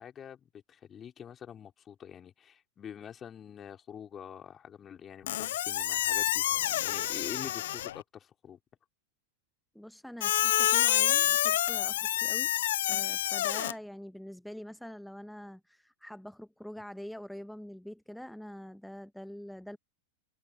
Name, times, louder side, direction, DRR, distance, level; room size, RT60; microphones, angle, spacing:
voice 1, 0.0-8.6, left 8 dB, 25° left, 4.9 m, -46 dB
Squeak, 5.3-8.0 10.2-13.7, left 13 dB, 60° left, 0.6 m, -28 dB
voice 2, 9.7-12.5 12.9-19.8, equal, ahead, 1.4 m, -45 dB
figure-of-eight pair, 90°, 0 cm